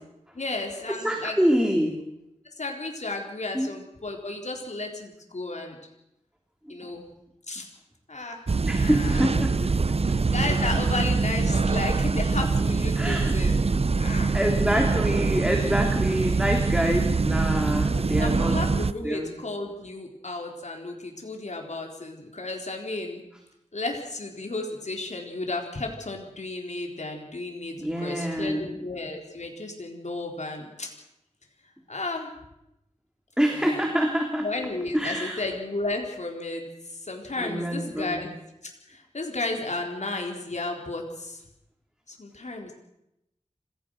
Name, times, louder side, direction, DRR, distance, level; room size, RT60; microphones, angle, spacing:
voice 1, 0.3-1.3 2.6-5.8 6.7-7.0 7.5-7.7 8.1-8.4 8.7-9.7 10.1-13.6 14.0-14.3 17.8-23.2 23.7-30.9 31.9-32.3 33.6-33.8 34.4-38.3 38.9-41.4 42.1-42.7, left 2 dB, 70° left, 1 dB, 3.9 m, -33 dB
voice 2, 0.9-2.0 3.5-3.7 6.7-6.9 8.6-9.5 12.9-13.3 14.3-18.6 19.0-19.3 27.8-28.7 33.4-34.4 34.9-35.4 37.4-38.3, equal, 5° right, 2 dB, 3.1 m, -26 dB
sound 1, 8.5-18.9, right 4 dB, 55° right, 0.7 m, -24 dB
26.0 x 16.5 x 6.5 m, 0.86 s
wide cardioid pair, 50°, 13 cm